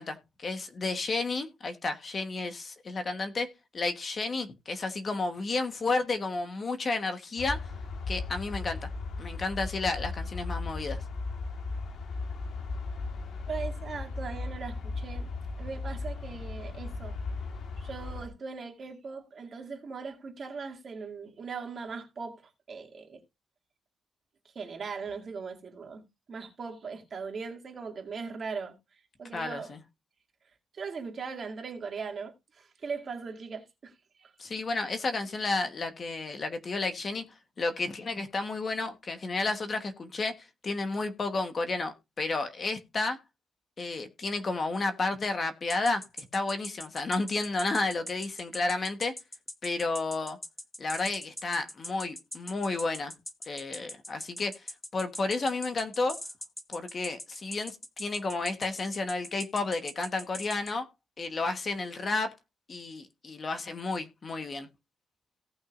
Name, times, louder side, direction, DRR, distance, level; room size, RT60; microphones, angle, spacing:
voice 1, 0.0-3.5 3.7-7.6 8.1-8.9 9.2-11.0 29.3-29.8 34.4-40.3 40.6-43.2 43.8-46.0 46.3-49.1 49.6-50.4 50.8-53.1 53.4-54.7 54.9-56.2 56.7-60.9 61.2-62.3 62.7-64.7, left 3 dB, 35° left, 1.2 m, -31 dB
sound 1, 7.4-18.3, left 3 dB, 70° left, 1.6 m, -36 dB
voice 2, 13.5-15.3 15.6-17.2 17.8-23.2 24.5-29.8 30.7-34.3, right 5 dB, 45° right, 2.3 m, -39 dB
sound 2, 45.7-60.7, left 1 dB, 10° left, 0.9 m, -41 dB
17.5 x 6.1 x 2.5 m
wide cardioid pair, 145°, 0 cm